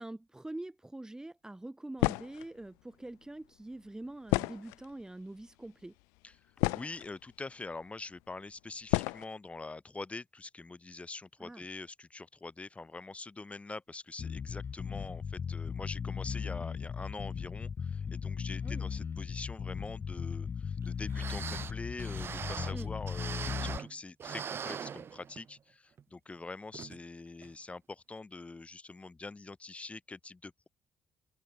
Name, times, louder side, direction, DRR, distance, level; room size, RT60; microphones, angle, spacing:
voice 1, 0.0-5.9 11.4-11.6 18.6-18.8 22.7-22.9, right 1 dB, 10° right, 1.5 m, -44 dB
sound 1, 2.0-2.5 4.3-5.0 5.8-5.9 6.3-7.1 8.0-8.1 8.9-9.2, left 28 dB, 85° left, 0.6 m, -30 dB
voice 2, 6.7-30.7, left 3 dB, 25° left, 3.6 m, -44 dB
Bass guitar, 14.2-23.8, left 6 dB, 45° left, 0.9 m, -37 dB
sound 2, 20.8-20.9 21.1-23.9 24.2-25.6 26.0-26.1 26.7-27.0 27.4-27.5, right 7 dB, 50° right, 2.0 m, -41 dB
supercardioid pair, 60°, 5 cm